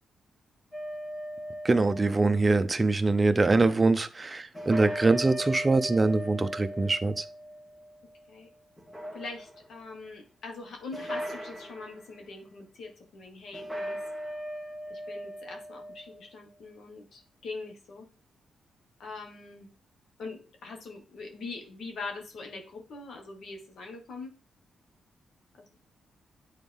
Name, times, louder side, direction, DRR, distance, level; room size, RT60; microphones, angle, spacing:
sound 1, 0.7-2.8 4.5-8.3 8.8-9.8 10.9-12.0 13.5-16.2, equal, 15° left, 1.7 m, -38 dB
voice 1, 1.6-7.2, right 3 dB, 25° right, 10 dB, 0.7 m, -24 dB
voice 2, 9.1-14.0 14.9-18.1 19.0-19.7 20.2-24.3 25.6-25.7, left 3 dB, 70° left, 3 dB, 1.8 m, -42 dB
9.0 x 4.0 x 3.6 m, 0.35 s
cardioid pair, 80°, 0 cm